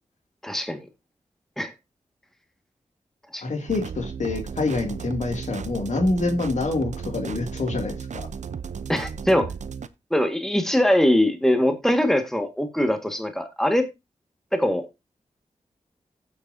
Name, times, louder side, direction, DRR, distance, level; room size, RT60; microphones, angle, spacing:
voice 1, 0.4-0.9 1.6-1.7 3.3-3.4 8.9-9.5 10.1-13.9 14.5-14.9, left 1 dB, 5° left, 1.7 m, -22 dB
voice 2, 3.4-8.3, left 3 dB, 65° left, 2.5 m, -26 dB
sound 1, 3.7-9.9, right 6 dB, 65° right, 0.7 m, -35 dB
15.5 x 7.2 x 2.7 m
cardioid pair, 45°, 13 cm